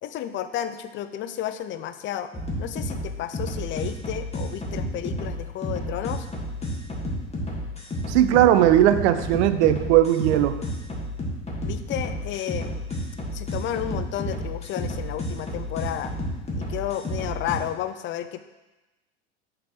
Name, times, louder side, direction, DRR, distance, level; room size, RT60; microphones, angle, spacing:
voice 1, 0.0-2.3 2.6-6.3 11.6-12.8 13.3-16.1 16.6-18.4, left 11 dB, 35° left, 10 dB, 0.4 m, -32 dB
sound 1, 2.3-17.6, left 1 dB, 15° left, 1.6 m, -31 dB
voice 2, 8.1-10.6, right 12 dB, 65° right, 11 dB, 0.6 m, -18 dB
6.5 x 4.0 x 4.2 m, 1.1 s
hypercardioid pair, 85°, 37 cm